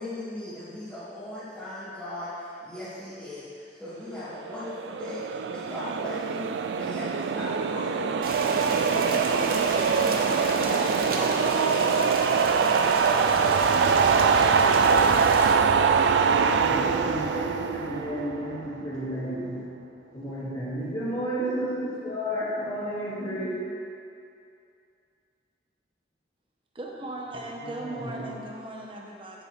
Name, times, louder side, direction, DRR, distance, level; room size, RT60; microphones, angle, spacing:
voice 1, 0.0-13.9, left 1 dB, 10° left, -16 dB, 2.0 m, -38 dB
sound 1, 4.5-18.8, right 5 dB, 80° right, 0.3 m, -23 dB
Rain, 8.2-15.5, right 2 dB, 55° right, 0.8 m, -33 dB
voice 2, 16.6-19.6 20.1-23.6 27.6-28.3, equal, 35° left, -14 dB, 2.1 m, -32 dB
voice 3, 26.7-29.4, right 1 dB, 30° right, -1 dB, 1.0 m, -37 dB
8.6 x 8.4 x 3.3 m, 2.5 s
head